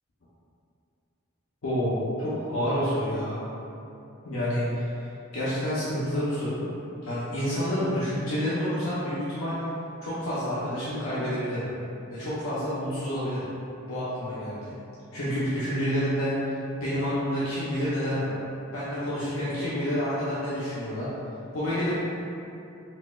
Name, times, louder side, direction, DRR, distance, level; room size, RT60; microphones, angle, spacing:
voice 1, 1.6-3.4 4.2-5.1 5.3-6.6 7.0-9.6 10.0-11.7 12.1-13.5 13.9-14.6 15.1-16.6 16.8-18.3 18.7-21.1 21.5-21.9, equal, 85° left, -11 dB, 0.6 m, -28 dB
4.1 x 2.1 x 2.3 m, 2.8 s
head